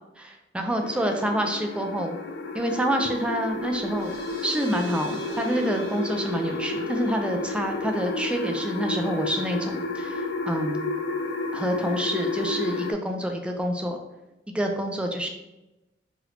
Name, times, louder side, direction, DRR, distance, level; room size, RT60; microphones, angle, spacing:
voice 1, 0.2-2.2 2.5-4.1 4.4-10.9 11.5-14.0 14.5-15.3, right 1 dB, 5° right, 3 dB, 0.3 m, -27 dB
sound 1, 0.8-12.9, left 3 dB, 75° left, 0.3 m, -31 dB
sound 2, 3.4-10.6, right 1 dB, 25° left, 1.0 m, -40 dB
3.1 x 3.1 x 2.4 m, 0.99 s
head